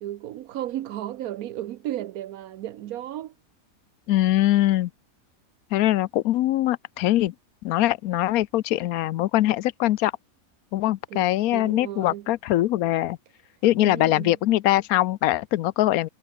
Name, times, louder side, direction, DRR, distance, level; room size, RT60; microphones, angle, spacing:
voice 1, 0.0-3.3 11.1-12.3 13.8-14.4, right 13 dB, 85° right, 1.2 m, -34 dB
voice 2, 4.1-4.9 5.7-7.3 7.6-10.1 10.7-13.2 13.6-16.1, left 14 dB, 80° left, 1.1 m, -22 dB
omnidirectional pair, 1.5 m